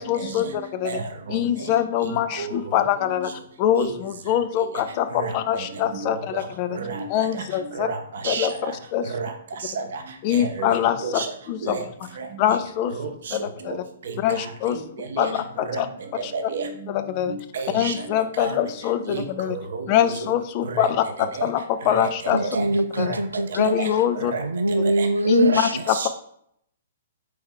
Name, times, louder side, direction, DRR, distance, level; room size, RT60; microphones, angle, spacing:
voice 1, 0.0-1.0 1.3-6.8 7.1-7.9 8.2-9.0 10.2-11.8 12.4-12.9 13.3-13.8 14.2-14.8 15.2-15.9 16.2-16.3 16.9-17.3 17.7-19.6 19.9-20.9 21.4-22.4 23.0-23.1 23.5-24.3 25.3-26.1, left 10 dB, 35° left, 10 dB, 0.3 m, -24 dB
voice 2, 0.8-1.4 2.0-2.5 3.8-3.9 5.1-5.6 5.9-6.4 6.7-7.1 7.3-7.4 7.7-8.0 8.2-8.7 9.1-9.3 9.8-9.9 10.3-10.7 11.0-11.3 11.6-11.8 12.2-12.3 13.0-13.4 14.1-14.2 15.1-15.3 15.7-15.8 16.3-16.7 17.3-17.9 18.4-18.6 19.1-20.1 20.7-20.9 21.3-21.4 21.9-22.0 22.4-22.7 23.0-23.2 23.8-23.9 24.3-24.4 25.0-25.1 25.4-25.6 25.9-26.1, right 5 dB, 55° right, 4 dB, 0.7 m, -30 dB
voice 3, 22.3-23.8 24.4-25.8, right 2 dB, 80° right, 8 dB, 0.4 m, -23 dB
4.3 x 3.4 x 3.4 m, 0.70 s
figure-of-eight pair, 115°, 0 cm